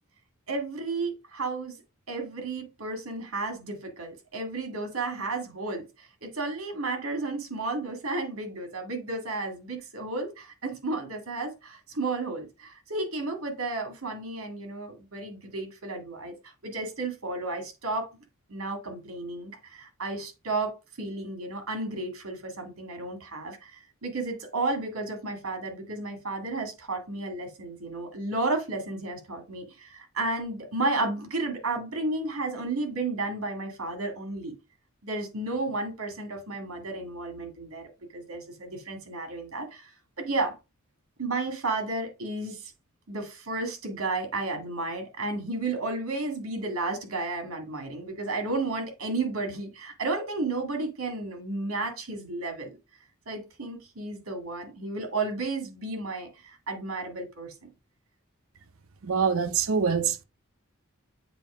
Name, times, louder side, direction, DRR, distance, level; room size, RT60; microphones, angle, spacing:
voice 1, 0.5-1.8 2.1-16.3 16.6-18.1 18.5-20.7 21.0-34.5 35.0-39.9 40.2-40.5 41.2-42.7 43.1-52.8 53.3-57.6, right 2 dB, 90° right, 1.9 m, -32 dB
voice 2, 59.0-60.2, right 6 dB, 70° right, 0.6 m, -25 dB
7.6 x 2.7 x 4.8 m
head